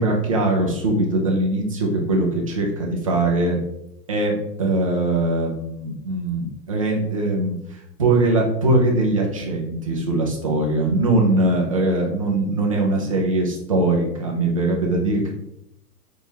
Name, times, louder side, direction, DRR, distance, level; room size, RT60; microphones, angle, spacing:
voice 1, 0.0-3.6 4.1-7.6 8.0-15.3, right 2 dB, 25° right, -1 dB, 0.3 m, -21 dB
4.4 x 3.5 x 2.7 m, 0.82 s
hypercardioid pair, 135°, 49 cm